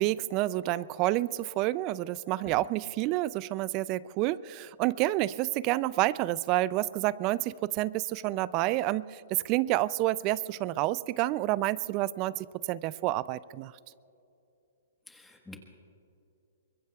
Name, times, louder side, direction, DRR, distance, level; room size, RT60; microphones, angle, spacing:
voice 1, 0.0-13.7, right 16 dB, 30° right, 20 dB, 0.4 m, -29 dB
voice 2, 15.1-15.6, left 2 dB, 5° left, 2 dB, 1.4 m, -48 dB
24.0 x 21.5 x 2.4 m, 2.7 s
hypercardioid pair, 145°, 0 cm